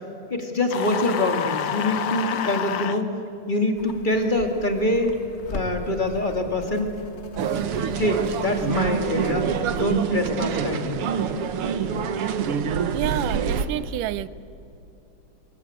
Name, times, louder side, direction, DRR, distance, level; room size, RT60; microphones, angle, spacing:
voice 1, 0.3-3.1 3.5-5.2 5.5-7.0 8.0-9.5 9.7-11.0, left 1 dB, 15° left, 4 dB, 2.0 m, -25 dB
sound 1, 0.7-3.0, left 9 dB, 80° left, 1.0 m, -28 dB
sound 2, 3.7-9.9, left 3 dB, 40° left, 0.9 m, -40 dB
sound 3, 7.4-13.7, right 7 dB, 55° right, 1.8 m, -26 dB
voice 2, 12.9-14.3, right 14 dB, 85° right, 17 dB, 2.3 m, -29 dB
27.5 x 22.5 x 8.8 m, 2.9 s
omnidirectional pair, 3.7 m